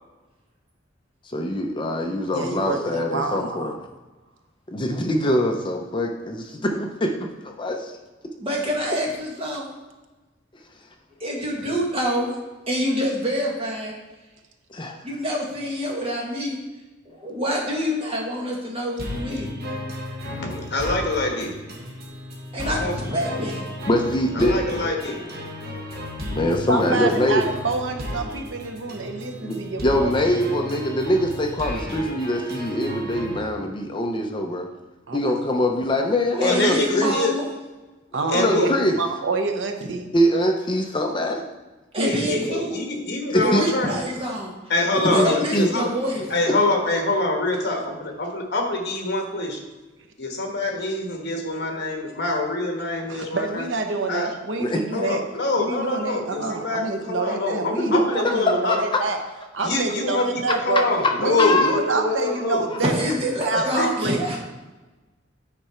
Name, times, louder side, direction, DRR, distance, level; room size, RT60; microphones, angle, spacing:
voice 1, 1.2-3.7 4.7-7.9 14.7-14.9 23.9-24.6 26.3-27.4 29.4-29.5 29.8-34.7 35.1-37.2 38.2-39.0 40.1-41.4 43.3-43.6 45.0-45.7 46.5-46.6 54.6-54.8 57.8-58.8 61.4-61.8, left 1 dB, 25° left, 3 dB, 0.6 m, -23 dB
voice 2, 2.3-3.8 26.7-30.1 35.1-35.4 38.1-40.1 41.9-42.6 53.1-55.2 55.6-59.2 59.5-60.8 61.2-63.0 63.5-64.2, right 3 dB, 80° right, 5 dB, 0.9 m, -27 dB
voice 3, 8.4-9.6 11.2-12.3 12.7-13.9 15.0-16.6 17.0-19.5 22.5-23.6 36.3-37.4 41.9-42.7 43.4-44.5 45.1-46.2 62.8-64.4, equal, 30° right, -2 dB, 1.6 m, -26 dB
sound 1, 19.0-33.4, left 1 dB, 55° right, 1.5 m, -34 dB
voice 4, 20.4-21.5 22.6-23.4 24.3-25.2 36.4-37.3 38.3-38.7 42.0-43.9 44.7-45.9 46.3-49.6 50.2-53.7 54.1-54.3 54.9-58.8 59.6-62.6 63.5-63.9, left 2 dB, 60° left, 2 dB, 1.4 m, -25 dB
9.2 x 4.7 x 4.4 m, 1.2 s
head